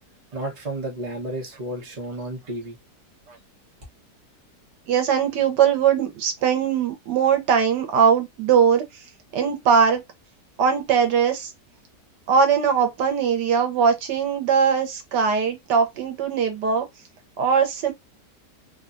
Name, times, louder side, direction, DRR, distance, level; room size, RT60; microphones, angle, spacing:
voice 1, 0.3-2.8, right 1 dB, 30° right, 0.8 m, -32 dB
voice 2, 4.9-8.8 9.3-10.0 10.6-11.5 12.3-16.9 17.4-17.9, right 6 dB, 85° right, 1.3 m, -20 dB
3.3 x 2.2 x 2.4 m
omnidirectional pair, 1.8 m